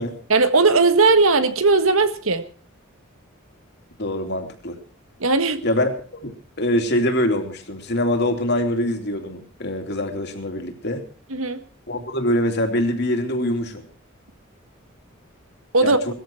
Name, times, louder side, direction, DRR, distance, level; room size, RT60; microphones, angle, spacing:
voice 1, 0.3-2.4 5.2-5.6 11.3-11.6 15.7-16.0, right 3 dB, 80° right, 10 dB, 1.6 m, -17 dB
voice 2, 4.0-4.8 5.6-5.9 6.2-11.0 11.9-13.8 15.8-16.0, left 1 dB, 55° left, 5 dB, 3.0 m, -24 dB
19.5 x 14.5 x 4.6 m, 0.39 s
head